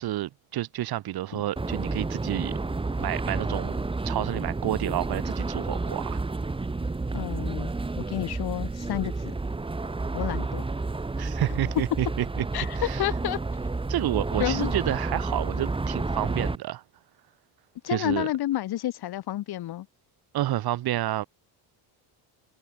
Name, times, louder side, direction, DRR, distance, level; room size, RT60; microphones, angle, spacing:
voice 1, 0.0-2.5 3.0-6.2 11.2-12.4 12.9-13.0 13.9-16.8 17.9-18.3 20.3-21.2, right 14 dB, 55° right, 2.7 m, -29 dB
sound 1, 1.6-16.6, right 3 dB, 10° right, 3.1 m, -30 dB
voice 2, 7.1-9.4 10.1-10.6 12.5-13.4 14.4-14.7 17.8-19.9, left 14 dB, 55° left, 5.2 m, -30 dB
cardioid pair, 155°, 45 cm